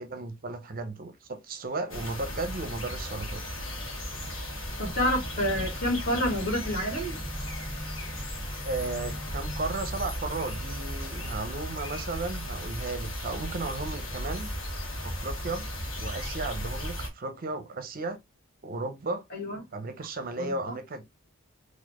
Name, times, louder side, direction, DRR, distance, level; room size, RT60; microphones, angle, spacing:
voice 1, 0.0-3.4 8.6-14.5 15.0-15.7 16.0-18.2 18.6-19.2 19.7-21.0, right 3 dB, 40° right, 0.6 m, -34 dB
sound 1, 1.9-17.1, equal, 65° left, 1.4 m, -35 dB
voice 2, 4.8-7.2 19.3-19.6 20.4-20.7, equal, 50° left, 1.8 m, -28 dB
4.0 x 2.5 x 2.8 m
head